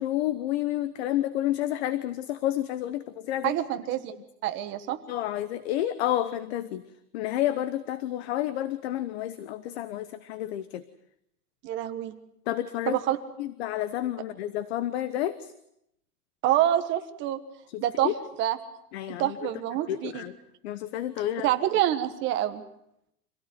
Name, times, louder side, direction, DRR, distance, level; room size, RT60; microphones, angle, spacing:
voice 1, 0.0-3.6 5.1-6.9 7.1-10.8 12.5-13.0 13.4-15.5 17.7-18.1 18.9-19.5 19.9-20.4 20.6-21.5, left 13 dB, 40° left, 14 dB, 1.0 m, -30 dB
voice 2, 3.4-4.1 4.4-5.0 11.6-12.1 12.9-13.2 16.4-17.4 17.8-18.1 18.4-18.6 19.1-20.2 21.4-22.6, right 12 dB, 25° right, 8 dB, 1.5 m, -26 dB
26.0 x 17.0 x 9.5 m, 0.79 s
supercardioid pair, 170°, 47 cm